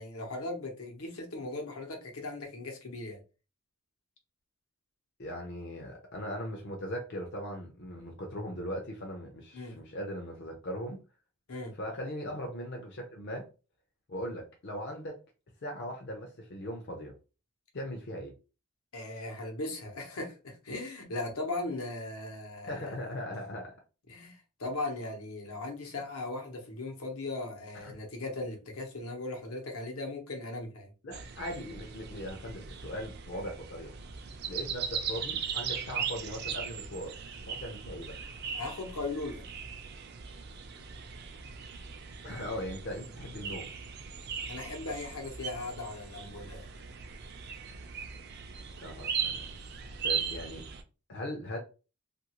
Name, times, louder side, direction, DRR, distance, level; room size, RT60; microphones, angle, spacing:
voice 1, 0.0-3.2 9.5-9.8 11.5-11.7 18.9-23.0 24.1-30.9 38.5-39.4 44.4-46.7, left 2 dB, 80° left, 0.9 m, -38 dB
voice 2, 5.2-11.0 11.8-13.5 14.1-15.2 15.6-17.1 17.7-18.3 22.7-23.7 27.8-27.9 31.0-33.9 34.5-37.2 37.4-38.2 42.2-43.7 48.8-49.5 50.0-50.6 51.1-51.6, equal, 50° left, 0.6 m, -39 dB
sound 1, 31.1-50.8, right 6 dB, 50° right, 0.4 m, -39 dB
2.7 x 2.5 x 2.9 m
head